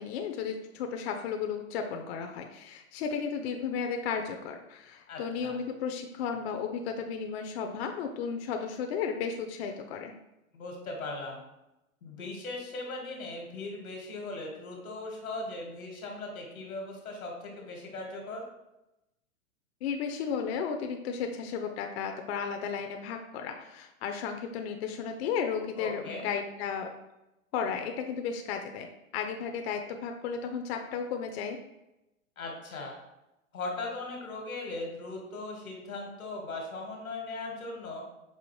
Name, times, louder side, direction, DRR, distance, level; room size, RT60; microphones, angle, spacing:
voice 1, 0.0-10.1 19.8-26.9 27.5-31.6, left 6 dB, 50° left, 5 dB, 0.5 m, -34 dB
voice 2, 5.1-5.6 10.5-11.4 12.0-18.4 25.8-26.2 32.4-32.9 33.5-38.0, left 2 dB, 90° left, 1 dB, 1.3 m, -39 dB
5.5 x 2.5 x 3.0 m, 0.93 s
hypercardioid pair, 115°, 41 cm